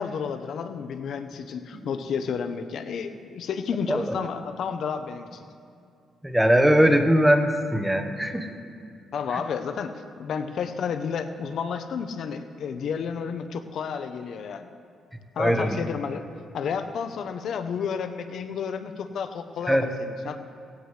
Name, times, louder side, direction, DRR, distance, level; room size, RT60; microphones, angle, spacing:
voice 1, 0.0-5.5 9.1-14.7 15.3-16.3 16.5-20.4, left 6 dB, 65° left, 8 dB, 0.8 m, -31 dB
voice 2, 6.2-8.5 15.4-15.8 19.7-19.9, equal, 5° right, 6 dB, 1.2 m, -20 dB
18.0 x 16.0 x 3.3 m, 2.4 s
cardioid pair, 90°, 0 cm